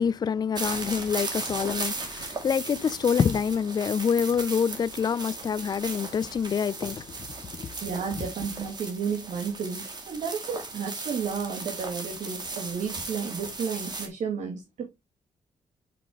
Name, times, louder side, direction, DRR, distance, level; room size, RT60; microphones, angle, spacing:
voice 1, 0.0-7.2 7.4-7.8, left 7 dB, 35° left, 0.4 m, -26 dB
sound 1, 0.5-14.1, right 3 dB, 35° right, 2.2 m, -37 dB
voice 2, 7.5-14.8, right 6 dB, 65° right, 1.9 m, -32 dB
6.3 x 5.9 x 3.6 m
cardioid pair, 105°, 13 cm